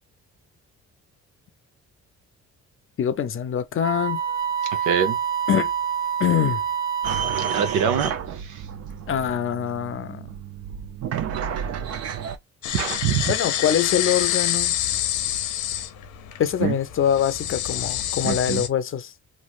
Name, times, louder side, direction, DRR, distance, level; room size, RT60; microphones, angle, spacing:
voice 1, 3.0-4.2 5.5-5.7 6.2-6.6 9.1-10.3 13.3-14.8 16.4-19.1, left 9 dB, 45° left, 0.5 m, -24 dB
Wind instrument woodwind instrument, 3.8-8.0, right 8 dB, 70° right, 1.4 m, -27 dB
voice 2, 4.8-5.2 7.4-8.6 12.7-13.3 16.6-16.8 18.2-18.6, right 8 dB, 90° right, 0.8 m, -25 dB
sound 1, 7.0-12.4, right 8 dB, 55° right, 0.6 m, -31 dB
sound 2, 12.6-18.7, left 11 dB, 80° left, 0.7 m, -27 dB
3.1 x 2.5 x 2.4 m
cardioid pair, 90°, 30 cm